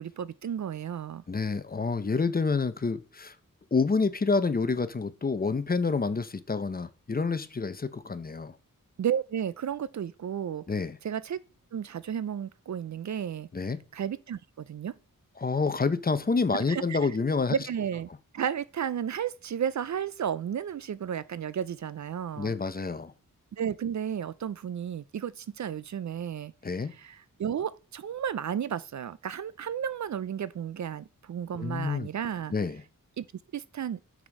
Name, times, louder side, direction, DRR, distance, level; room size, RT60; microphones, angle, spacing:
voice 1, 0.0-1.2 9.0-10.7 11.0-11.4 11.7-13.5 13.9-14.9 16.5-17.1 17.5-18.1 18.3-22.5 23.5-26.5 27.0-32.5 33.2-33.3 33.5-34.0, right 8 dB, 60° right, 0.5 m, -33 dB
voice 2, 1.3-3.3 3.7-8.6 10.7-11.0 13.5-13.8 15.4-17.6 22.4-23.1 26.6-26.9 31.6-32.1 32.5-32.8, left 4 dB, 25° left, 0.6 m, -28 dB
6.3 x 6.1 x 5.2 m
wide cardioid pair, 130°, 33 cm